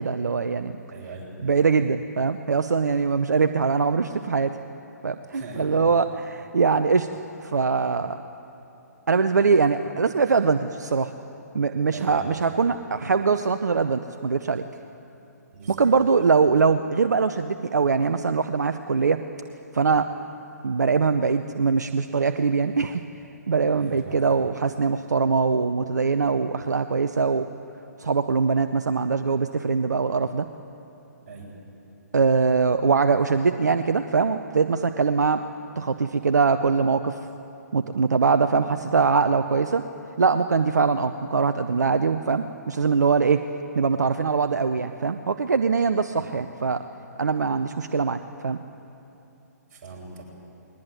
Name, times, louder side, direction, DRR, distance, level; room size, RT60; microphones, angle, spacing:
voice 1, 0.0-0.8 1.4-4.5 5.0-7.1 7.4-8.2 9.1-11.1 11.5-14.6 15.7-19.2 19.7-20.1 20.6-23.0 23.5-27.5 28.0-30.5 32.1-35.4 35.8-37.2 37.7-39.8 40.2-43.4 43.8-46.8 47.2-48.6, right 5 dB, 75° right, 9 dB, 0.7 m, -22 dB
voice 2, 0.9-1.3 5.3-5.7 11.9-12.4 15.5-15.8 23.8-24.3 31.3-31.5 46.1-46.2 49.7-50.2, right 4 dB, 40° right, -3 dB, 7.4 m, -40 dB
21.0 x 19.5 x 9.2 m, 2.9 s
figure-of-eight pair, 130°, 9 cm